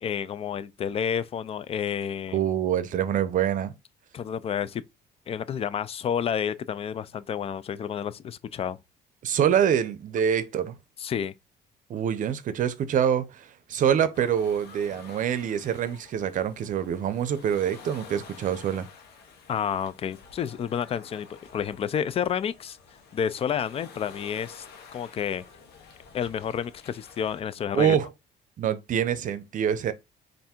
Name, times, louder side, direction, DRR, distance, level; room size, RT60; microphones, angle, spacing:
voice 1, 0.0-2.4 4.1-4.8 5.3-8.8 11.0-11.3 19.5-22.8 23.1-24.6 24.9-25.4 26.1-28.0, left 8 dB, 35° left, 0.4 m, -30 dB
voice 2, 2.3-3.7 9.2-10.8 11.9-18.9 27.7-28.1 28.6-29.9, right 9 dB, 50° right, 0.6 m, -25 dB
sound 1, 14.1-27.4, left 5 dB, 80° left, 1.0 m, -50 dB
3.4 x 2.6 x 4.3 m
cardioid pair, 110°, 17 cm